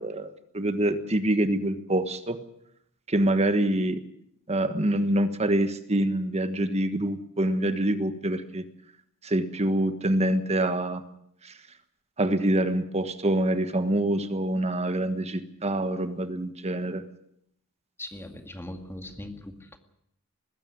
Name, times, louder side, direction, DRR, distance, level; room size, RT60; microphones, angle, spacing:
voice 1, 0.0-2.4 3.1-4.0 4.5-8.6 9.2-11.0 11.4-11.6 12.2-17.1, right 1 dB, 30° right, 10 dB, 1.4 m, -26 dB
voice 2, 18.0-19.8, left 1 dB, 10° left, 6 dB, 2.1 m, -40 dB
21.0 x 15.5 x 9.6 m, 0.72 s
head